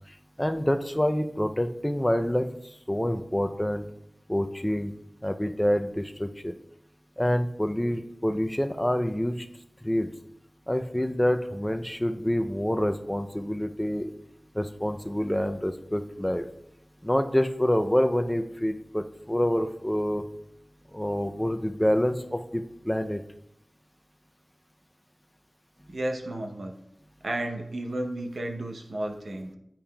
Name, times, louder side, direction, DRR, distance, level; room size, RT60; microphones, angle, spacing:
voice 1, 0.4-2.6 2.9-3.9 4.3-4.9 5.2-6.5 7.2-9.5 9.8-10.1 10.7-14.1 14.5-16.5 17.0-20.2 20.9-23.2, equal, 10° left, 7 dB, 0.4 m, -27 dB
voice 2, 25.9-26.7 27.2-29.5, right 1 dB, 80° right, 2 dB, 0.8 m, -32 dB
8.5 x 5.5 x 2.3 m, 0.79 s
cardioid pair, 40°, 0 cm